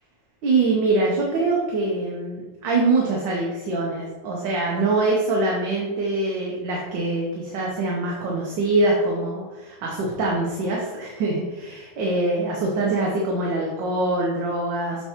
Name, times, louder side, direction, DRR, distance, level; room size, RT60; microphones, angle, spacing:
voice 1, 0.4-15.0, right 2 dB, 70° right, -2 dB, 1.5 m, -24 dB
7.4 x 4.6 x 2.9 m, 1.2 s
omnidirectional pair, 2.2 m